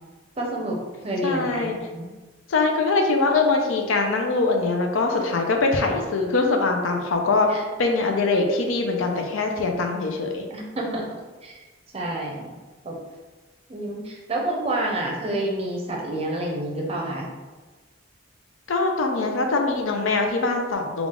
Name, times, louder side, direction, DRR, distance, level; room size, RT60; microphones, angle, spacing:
voice 1, 0.4-0.8 1.0-2.1 7.5-7.6 10.5-11.1 11.4-11.6 11.9-12.5 12.8-13.0 13.7-17.3, right 1 dB, 30° right, -1 dB, 0.6 m, -28 dB
voice 2, 1.2-1.8 2.5-10.4 18.7-21.1, left 3 dB, 75° left, 3 dB, 0.5 m, -23 dB
3.5 x 2.3 x 3.6 m, 1.3 s
head